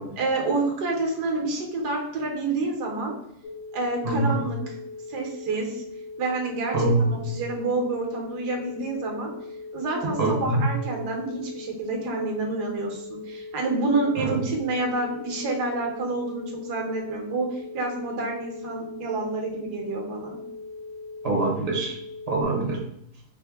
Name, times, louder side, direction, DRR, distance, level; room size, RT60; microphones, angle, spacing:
voice 1, 0.2-3.1 3.7-4.8 5.1-5.8 6.2-9.3 9.7-20.4, right 3 dB, 75° right, 1 dB, 1.6 m, -28 dB
sound 1, 3.4-22.4, left 3 dB, 70° left, 0.9 m, -40 dB
voice 2, 4.0-4.4 6.7-7.3 10.2-10.7 14.2-14.3 21.2-22.0 22.3-22.8, right 2 dB, 35° right, 0 dB, 0.7 m, -24 dB
5.1 x 2.2 x 3.4 m, 0.72 s
omnidirectional pair, 1.8 m